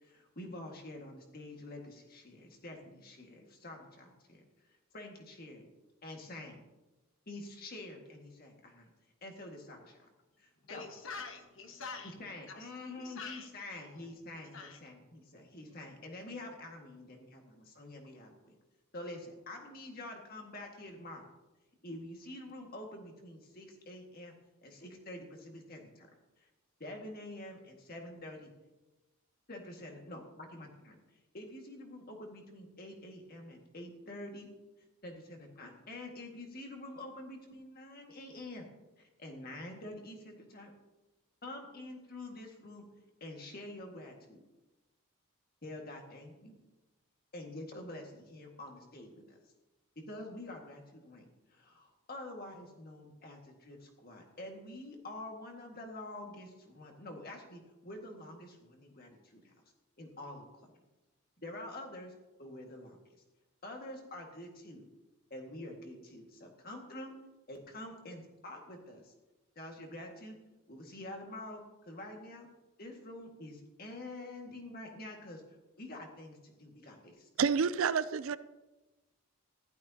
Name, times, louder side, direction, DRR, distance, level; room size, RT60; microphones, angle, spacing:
voice 1, 0.0-4.4 4.9-5.7 6.0-6.6 7.3-8.9 9.2-10.1 10.4-10.9 12.2-18.5 18.9-21.2 21.8-24.4 24.6-26.1 26.4-26.5 26.8-28.5 29.5-31.0 31.3-34.5 35.0-38.7 39.0-40.7 41.4-42.9 43.2-44.4 45.6-46.5 47.3-49.4 50.1-59.5 60.0-60.7 61.4-62.1 62.4-63.0 63.6-64.8 65.3-67.1 67.5-69.1 69.6-70.4 70.7-72.5 72.8-75.4 75.8-77.3, left 1 dB, 40° left, 1.8 m, -47 dB
voice 2, 10.6-12.1 12.5-14.1 14.3-14.8, left 4 dB, 60° left, 1.4 m, -46 dB
voice 3, 77.4-78.4, right 6 dB, 65° right, 0.4 m, -29 dB
15.0 x 12.0 x 2.8 m
head